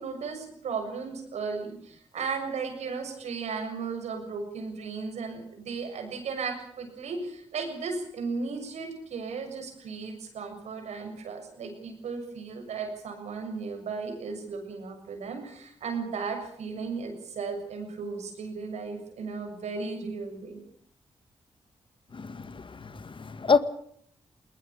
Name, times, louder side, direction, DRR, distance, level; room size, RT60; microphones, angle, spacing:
voice 1, 0.0-20.6, right 4 dB, 85° right, 6.8 m, -35 dB
voice 2, 22.1-23.6, left 5 dB, 50° left, 1.9 m, -27 dB
20.5 x 19.5 x 8.6 m
cardioid pair, 55°, 11 cm